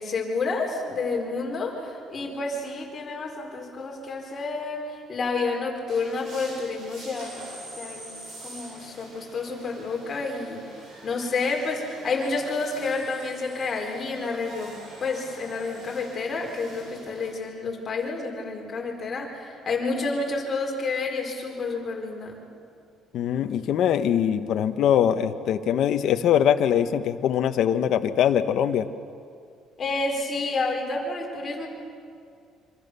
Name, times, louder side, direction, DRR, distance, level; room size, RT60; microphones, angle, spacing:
voice 1, 0.0-7.4 7.8-8.1 8.4-10.6 11.0-14.7 15.0-22.4 29.8-31.7, left 3 dB, 30° left, 0 dB, 4.5 m, -29 dB
sound 1, 5.9-17.3, right 1 dB, 55° right, 7.6 m, -45 dB
voice 2, 23.1-28.9, left 9 dB, 60° left, 7 dB, 1.2 m, -22 dB
26.5 x 26.0 x 6.9 m, 2.3 s
cardioid pair, 150°, 0 cm